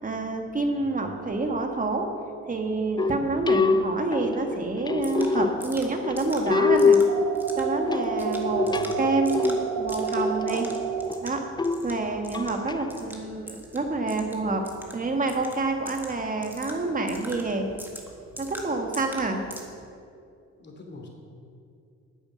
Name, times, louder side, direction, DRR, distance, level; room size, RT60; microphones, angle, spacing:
voice 1, 0.0-2.1 2.5-7.0 7.6-10.7 11.2-11.4 11.8-14.6 14.9-17.7 18.4-19.4, right 3 dB, 25° right, 3 dB, 1.6 m, -28 dB
sound 1, 3.0-12.8, left 4 dB, 15° left, 0.3 m, -26 dB
sound 2, 5.0-19.6, right 1 dB, 5° right, 1.9 m, -44 dB
sound 3, 7.1-11.1, right 5 dB, 70° right, 1.0 m, -29 dB
voice 2, 8.6-9.0 20.6-21.1, left 3 dB, 35° left, 1 dB, 2.8 m, -44 dB
9.6 x 8.8 x 6.3 m, 2.4 s
cardioid pair, 90°, 30 cm